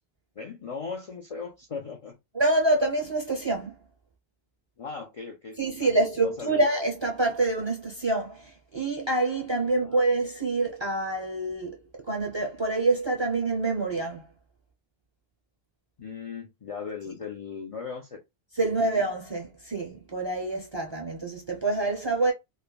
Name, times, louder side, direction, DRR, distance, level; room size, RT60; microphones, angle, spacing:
voice 1, 0.4-2.2 4.8-5.9 6.2-6.6 9.8-10.0 16.0-18.2 18.7-18.8, left 5 dB, 50° left, 0.4 m, -38 dB
voice 2, 2.3-3.8 5.6-11.8 12.1-14.2 18.6-22.3, right 2 dB, 35° right, 0.6 m, -26 dB
3.1 x 2.2 x 2.2 m
omnidirectional pair, 1.0 m